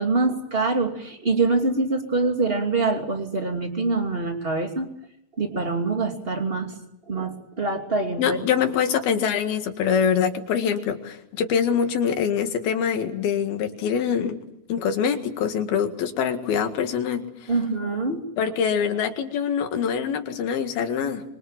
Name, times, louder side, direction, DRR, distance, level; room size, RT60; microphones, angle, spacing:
voice 1, 0.0-4.9 5.4-6.7 7.1-8.5 17.5-18.2, right 3 dB, 20° right, 4 dB, 2.3 m, -25 dB
voice 2, 8.2-14.4 14.7-17.5 18.4-21.2, left 7 dB, 80° left, 6 dB, 3.8 m, -24 dB
26.0 x 25.0 x 7.5 m, 0.78 s
omnidirectional pair, 4.3 m